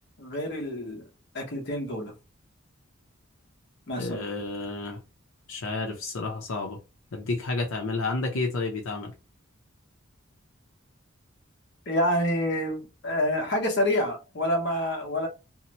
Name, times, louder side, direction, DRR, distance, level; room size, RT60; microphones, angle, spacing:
voice 1, 0.2-1.1 1.3-2.1 3.9-4.3 11.9-15.3, left 1 dB, 55° left, 0.9 m, -27 dB
voice 2, 4.0-5.0 5.5-6.8 7.1-9.1, left 3 dB, 85° left, 0.6 m, -30 dB
2.7 x 2.1 x 2.8 m
head